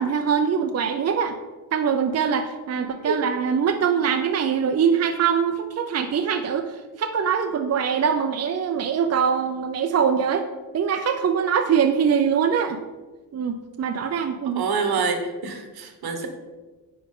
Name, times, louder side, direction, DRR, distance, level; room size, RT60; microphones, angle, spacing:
voice 1, 0.0-1.4 1.7-10.5 10.7-12.8 13.3-14.6, right 7 dB, 40° right, 5 dB, 0.5 m, -23 dB
voice 2, 2.8-3.2 14.5-16.3, right 5 dB, 70° right, 5 dB, 1.3 m, -27 dB
10.0 x 4.4 x 3.7 m, 1.2 s
cardioid pair, 110°, 39 cm